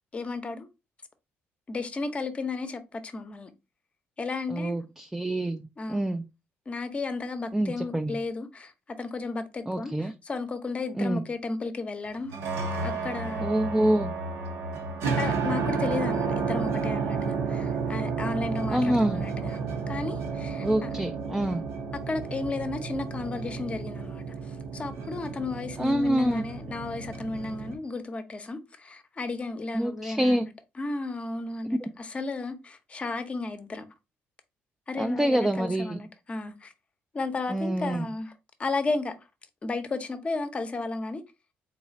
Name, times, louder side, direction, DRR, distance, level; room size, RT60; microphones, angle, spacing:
voice 1, 0.1-0.7 1.7-3.5 4.2-4.8 5.8-6.1 6.7-12.4 12.8-13.5 15.0-19.6 19.9-21.1 21.9-30.5 30.8-33.9 34.9-36.7 37.1-38.3 38.6-39.2 39.6-41.2, left 3 dB, 30° left, 0.7 m, -33 dB
voice 2, 4.5-6.2 7.5-8.2 9.7-10.1 11.0-11.2 13.4-14.1 18.7-19.2 20.6-21.7 25.8-26.4 29.7-30.5 35.0-36.0 37.5-38.1, right 1 dB, 5° right, 0.3 m, -26 dB
sound 1, 12.2-27.8, right 5 dB, 90° right, 1.0 m, -32 dB
4.0 x 2.4 x 4.0 m
cardioid pair, 115°, 4 cm